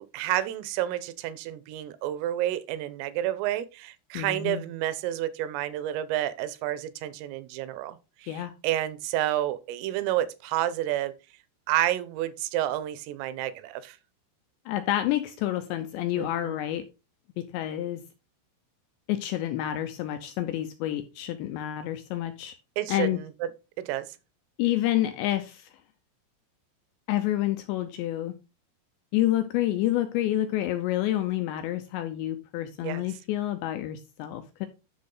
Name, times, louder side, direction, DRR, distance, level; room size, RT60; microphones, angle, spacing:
voice 1, 0.1-11.1 11.7-14.0 16.2-16.6 22.8-23.5 23.8-24.1 32.8-33.0, right 13 dB, 80° right, 3.4 m, -30 dB
voice 2, 4.1-4.6 8.3-8.5 14.7-16.8 17.4-18.0 19.1-22.5 22.9-23.2 24.6-25.7 27.1-28.4 29.1-34.7, left 13 dB, 85° left, 2.6 m, -28 dB
10.5 x 6.2 x 3.8 m
omnidirectional pair, 5.9 m